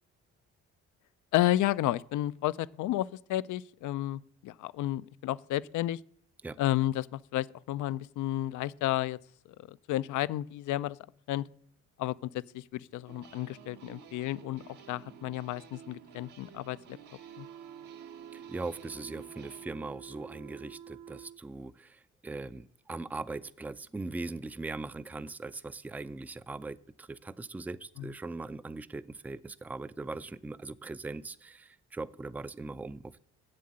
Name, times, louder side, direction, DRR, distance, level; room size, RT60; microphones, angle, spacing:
voice 1, 1.3-6.0 6.6-9.2 9.7-11.0 11.3-11.4 12.0-12.3 12.5-14.6 14.9-16.8 17.4-17.5 28.0-28.1, left 15 dB, 75° left, 0.5 m, -31 dB
sound 1, 13.1-19.7, right 7 dB, 85° right, 1.4 m, -52 dB
sound 2, 17.2-21.4, right 9 dB, 65° right, 0.9 m, -48 dB
voice 2, 18.3-33.2, right 3 dB, 5° right, 0.4 m, -40 dB
7.6 x 7.5 x 8.6 m
cardioid pair, 90°, 30 cm